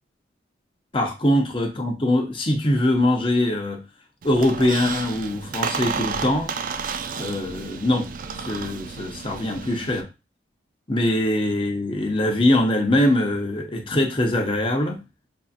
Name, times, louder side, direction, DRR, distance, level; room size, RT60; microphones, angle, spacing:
voice 1, 0.9-3.8 4.2-6.6 7.2-8.1 8.4-10.1 10.9-15.0, left 1 dB, 30° left, 0.8 m, -22 dB
Squeak, 4.2-10.0, right 5 dB, 45° right, 0.3 m, -32 dB
6.3 x 2.7 x 2.5 m
head